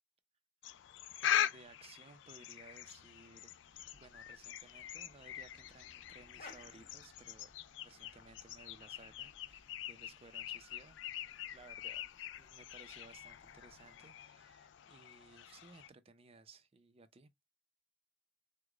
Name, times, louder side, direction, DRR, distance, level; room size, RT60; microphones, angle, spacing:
sound 1, 0.6-15.9, left 10 dB, 70° left, 0.3 m, -43 dB
voice 1, 1.2-3.5 3.9-7.5 7.8-11.0 11.5-12.0 12.4-17.5, right 3 dB, 30° right, 0.5 m, -59 dB
sound 2, 3.7-14.0, left 3 dB, 50° left, 1.1 m, -63 dB
4.7 x 2.1 x 2.4 m
head